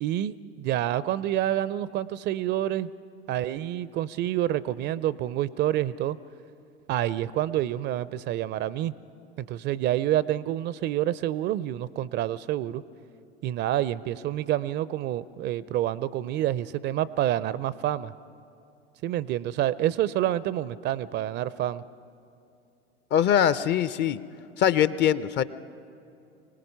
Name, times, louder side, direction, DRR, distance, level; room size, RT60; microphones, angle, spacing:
voice 1, 0.0-2.9 3.3-6.2 6.9-8.9 9.4-12.8 13.4-18.1 19.0-21.8, right 12 dB, 35° right, 18 dB, 0.5 m, -28 dB
voice 2, 23.1-24.2 24.6-25.4, left 10 dB, 35° left, 16 dB, 0.6 m, -22 dB
25.0 x 18.5 x 5.6 m, 2.7 s
figure-of-eight pair, 80°, 31 cm